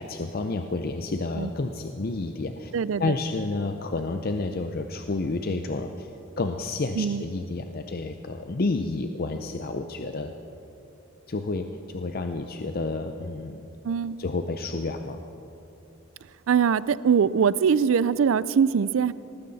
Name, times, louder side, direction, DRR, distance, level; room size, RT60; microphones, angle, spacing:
voice 1, 0.0-2.7 3.0-6.1 6.4-10.3 11.3-13.6 14.2-15.2, left 3 dB, 45° left, 6 dB, 0.6 m, -30 dB
voice 2, 2.7-3.1 7.0-7.2 13.8-14.2 16.5-19.1, right 7 dB, 70° right, 19 dB, 0.4 m, -22 dB
18.5 x 15.0 x 4.1 m, 2.9 s
head